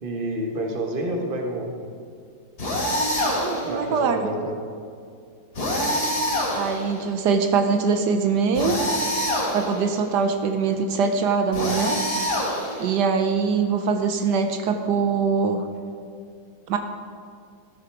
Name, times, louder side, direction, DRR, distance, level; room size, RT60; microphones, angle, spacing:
voice 1, 0.0-1.8 3.6-4.6, right 1 dB, 35° right, 1 dB, 1.5 m, -29 dB
sound 1, 2.6-3.7 5.5-7.0 8.5-9.8 11.5-12.9, equal, 65° left, 3.6 m, -25 dB
voice 2, 3.4-4.3 6.5-8.8 9.5-12.0 12.8-15.7 16.7-16.8, right 5 dB, 80° right, 6 dB, 1.4 m, -23 dB
13.5 x 10.5 x 4.8 m, 2.3 s
omnidirectional pair, 1.8 m